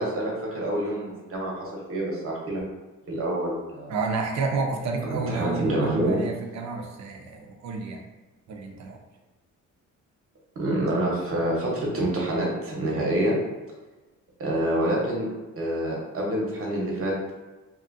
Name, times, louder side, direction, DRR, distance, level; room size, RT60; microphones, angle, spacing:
voice 1, 0.0-1.5 1.9-2.6 3.1-3.9 5.0-6.2 10.6-13.4 14.4-15.3 15.6-17.1, right 1 dB, 45° right, -3 dB, 1.0 m, -27 dB
voice 2, 3.9-8.0 8.5-9.0, right 4 dB, 65° right, 2 dB, 0.6 m, -30 dB
2.8 x 2.4 x 2.6 m, 1.2 s
cardioid pair, 90°, 30 cm